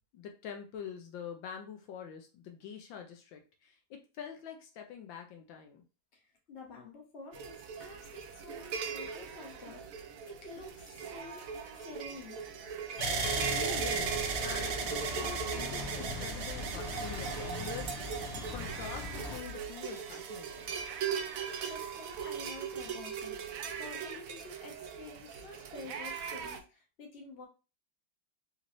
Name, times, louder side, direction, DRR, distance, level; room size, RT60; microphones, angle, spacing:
voice 1, 0.1-5.8 13.4-20.7, left 7 dB, 80° left, 4 dB, 1.3 m, -46 dB
voice 2, 6.1-9.9 10.3-12.4 21.3-23.4 23.8-27.5, left 3 dB, 40° left, 0 dB, 1.1 m, -49 dB
sound 1, 7.3-26.6, right 7 dB, 90° right, 0.7 m, -40 dB
sound 2, 13.0-19.4, left 3 dB, 60° left, 0.7 m, -40 dB
sound 3, 13.0-21.0 21.7-22.4, right 5 dB, 70° right, 1.2 m, -38 dB
4.1 x 3.0 x 2.5 m, 0.32 s
omnidirectional pair, 2.1 m